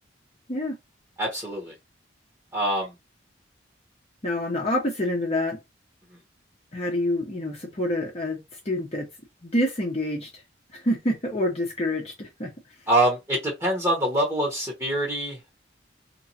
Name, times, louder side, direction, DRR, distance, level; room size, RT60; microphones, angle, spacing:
voice 1, 1.2-1.7 2.5-2.9 12.9-15.5, right 1 dB, 15° right, 1.0 m, -25 dB
voice 2, 4.2-5.6 6.7-8.4 8.6-9.1 9.4-10.3 10.7-12.5, left 1 dB, 35° left, 0.8 m, -27 dB
3.9 x 3.0 x 2.7 m
head